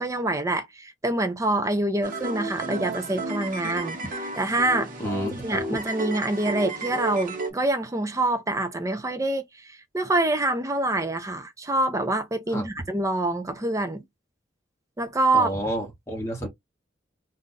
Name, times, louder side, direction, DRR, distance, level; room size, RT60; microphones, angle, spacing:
voice 1, 0.0-4.0 4.4-4.9 5.3-14.0 15.0-15.5, right 2 dB, 15° right, 0.5 m, -26 dB
sound 1, 2.0-7.5, right 2 dB, 45° right, 0.9 m, -32 dB
voice 2, 5.0-5.6 12.5-12.7 15.3-16.5, equal, 15° left, 1.0 m, -30 dB
2.6 x 2.5 x 3.9 m
head